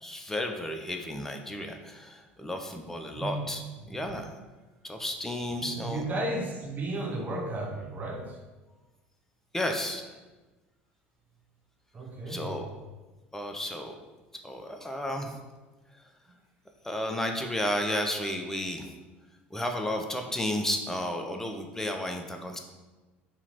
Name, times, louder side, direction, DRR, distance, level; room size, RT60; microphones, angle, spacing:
voice 1, 0.0-3.6 3.9-4.3 4.8-6.0 9.5-10.1 12.3-12.7 13.3-13.9 14.4-15.4 16.8-18.9 19.5-22.6, left 1 dB, 5° left, 3 dB, 0.5 m, -32 dB
voice 2, 3.2-3.5 3.8-4.1 5.6-8.4 11.9-12.6, right 1 dB, 30° right, 0 dB, 0.9 m, -34 dB
2.9 x 2.8 x 4.0 m, 1.2 s
figure-of-eight pair, 65°, 6 cm